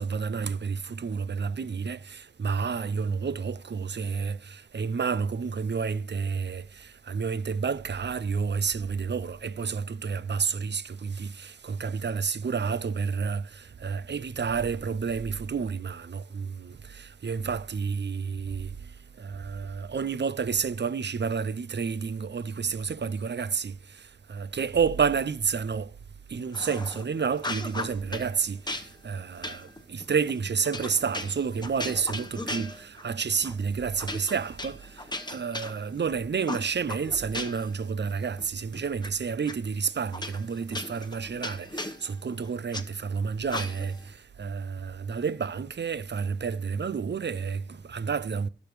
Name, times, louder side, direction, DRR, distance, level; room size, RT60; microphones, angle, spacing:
voice 1, 0.0-18.7 19.2-23.7 24.3-25.9 26.3-28.6 29.0-34.8 35.3-48.5, right 6 dB, 70° right, 0.4 m, -30 dB
sound 1, 26.5-27.0 27.4-28.3 28.7-33.1 33.4-33.6 34.0-36.1 36.5-37.8 38.1-39.1 39.5-39.6 40.1-42.9 43.5-44.0, left 1 dB, 25° left, 1.0 m, -37 dB
16.5 x 7.0 x 3.1 m
wide cardioid pair, 60°, 19 cm